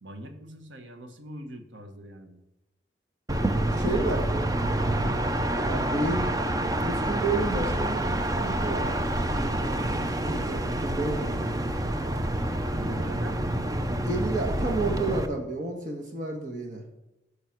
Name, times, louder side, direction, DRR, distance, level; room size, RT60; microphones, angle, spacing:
voice 1, 0.0-2.4 3.7-4.9 12.7-13.5, right 1 dB, 90° right, 7 dB, 1.4 m, -42 dB
sound 1, 3.3-15.3, right 1 dB, 20° right, 0.6 m, -27 dB
voice 2, 3.7-4.2 5.6-6.3 6.8-8.1 8.4-11.6 12.9-13.0 14.0-16.8, right 2 dB, 45° right, 1 dB, 1.4 m, -31 dB
12.5 x 6.7 x 5.9 m, 0.93 s
head